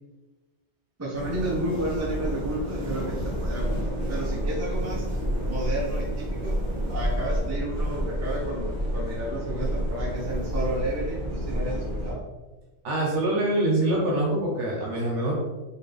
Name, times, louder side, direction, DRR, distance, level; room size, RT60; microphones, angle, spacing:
voice 1, 1.0-5.0 5.4-6.6 6.9-12.2, right 1 dB, 15° right, -4 dB, 0.6 m, -32 dB
sound 1, 1.1-12.1, equal, 40° right, 1.2 m, -29 dB
voice 2, 12.8-15.3, right 1 dB, 75° right, -3 dB, 1.3 m, -24 dB
4.4 x 2.6 x 3.3 m, 1.1 s
omnidirectional pair, 1.2 m